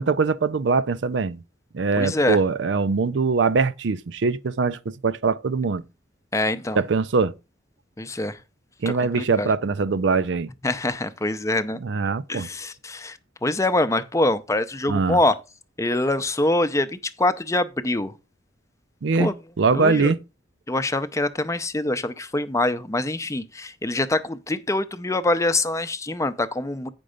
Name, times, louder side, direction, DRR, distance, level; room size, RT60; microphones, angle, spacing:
voice 1, 0.0-1.4 1.7-5.8 6.8-7.4 8.8-10.5 11.8-12.5 14.9-15.2 19.0-19.3 19.6-20.2, right 4 dB, 70° right, 0.5 m, -22 dB
voice 2, 2.0-2.4 6.3-6.8 8.0-8.4 8.9-9.5 10.6-11.8 12.3-15.4 15.8-18.1 19.2-19.3 19.7-20.1 20.7-26.9, left 2 dB, 15° left, 0.6 m, -24 dB
8.8 x 5.3 x 5.0 m
head